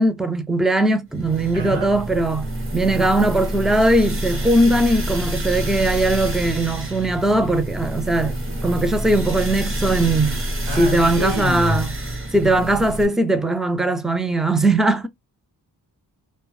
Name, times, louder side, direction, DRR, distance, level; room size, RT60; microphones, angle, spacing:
voice 1, 0.0-2.5 2.7-8.3 8.6-10.5 10.8-11.9 12.3-15.1, right 1 dB, ahead, 0.4 m, -19 dB
sound 1, 1.1-13.0, right 1 dB, 30° right, 0.9 m, -27 dB
voice 2, 1.5-2.1 10.7-11.8, left 1 dB, 90° right, 1.1 m, -27 dB
2.1 x 2.1 x 3.0 m
cardioid pair, 45°, 43 cm